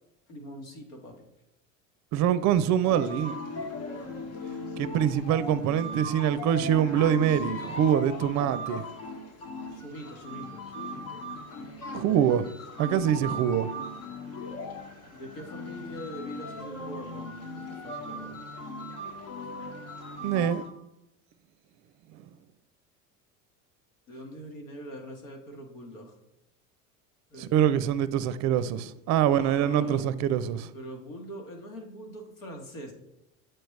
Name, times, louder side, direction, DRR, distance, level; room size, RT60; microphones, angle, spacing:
voice 1, 0.3-1.3 9.7-11.2 15.1-18.4 24.1-26.1 27.3-27.7 29.3-30.0 30.7-32.9, equal, 80° left, 1.6 m, -43 dB
voice 2, 2.1-3.3 4.8-8.8 11.9-12.5 12.8-13.7 20.2-20.6 27.4-30.7, right 9 dB, 45° right, 0.5 m, -24 dB
sound 1, 2.8-20.7, left 1 dB, 55° left, 1.2 m, -38 dB
7.9 x 4.3 x 3.2 m
hypercardioid pair, 85°, 40 cm